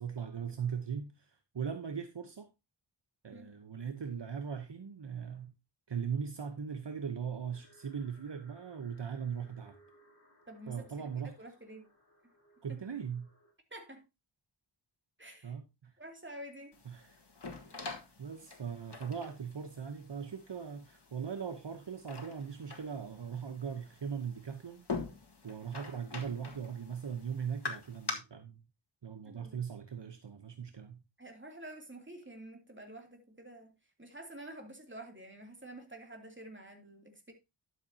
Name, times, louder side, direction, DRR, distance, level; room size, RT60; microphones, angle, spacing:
voice 1, 0.0-2.5 3.2-5.5 5.9-9.8 10.7-11.4 12.6-13.3 15.4-16.0 16.8-17.2 18.2-24.8 25.4-28.6 29.0-31.0, right 7 dB, 60° right, 1.0 m, -39 dB
sound 1, 7.5-13.5, equal, 35° left, 4.4 m, -65 dB
voice 2, 10.5-10.8 11.2-11.9 12.7-12.8 13.7-14.0 15.2-15.5 16.0-16.7 29.3-29.6 31.2-33.7 34.0-37.3, right 1 dB, 25° right, 2.8 m, -49 dB
sound 2, 16.7-28.1, left 4 dB, 60° left, 1.8 m, -45 dB
12.0 x 7.3 x 2.8 m
wide cardioid pair, 55°, 47 cm